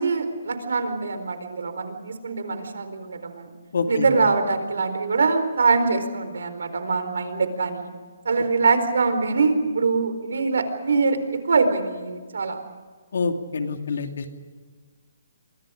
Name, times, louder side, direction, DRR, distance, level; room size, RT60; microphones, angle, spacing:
voice 1, 0.0-3.5 3.9-7.9 8.2-11.2 11.4-12.6, right 4 dB, 80° right, 9 dB, 4.3 m, -23 dB
voice 2, 3.7-4.1 13.1-14.2, left 4 dB, 60° left, 5 dB, 2.7 m, -26 dB
29.5 x 24.0 x 5.1 m, 1.5 s
hypercardioid pair, 175°, 0 cm